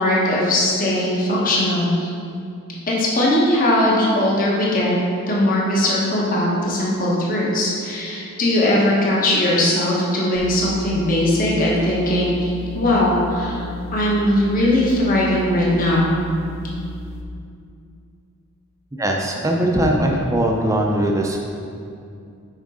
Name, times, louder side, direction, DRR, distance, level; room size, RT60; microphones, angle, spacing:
voice 1, 0.0-2.1 2.9-5.0 5.3-16.2, left 1 dB, 40° left, -4 dB, 1.1 m, -19 dB
sound 1, 10.3-17.2, equal, 65° left, 0.8 m, -33 dB
voice 2, 19.0-21.4, right 1 dB, 15° right, 1 dB, 0.5 m, -20 dB
7.2 x 5.2 x 3.7 m, 2.4 s
head